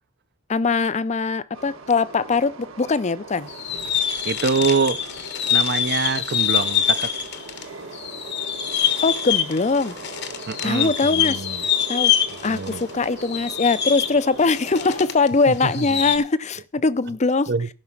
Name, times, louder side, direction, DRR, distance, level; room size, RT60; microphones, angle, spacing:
voice 1, 0.5-3.5 9.0-10.0 10.6-11.5 11.9-12.1 12.4-17.5, left 4 dB, 30° left, 0.5 m, -21 dB
Train, 1.5-15.1, right 3 dB, 65° right, 1.5 m, -40 dB
sound 1, 3.5-7.6 7.9-15.3 15.5-16.2, left 9 dB, 50° left, 1.0 m, -25 dB
voice 2, 4.2-5.0 5.5-7.1 10.5-11.6 12.5-12.9 15.5-16.0 17.5-17.7, right 4 dB, 50° right, 0.6 m, -25 dB
15.0 x 6.0 x 5.9 m
head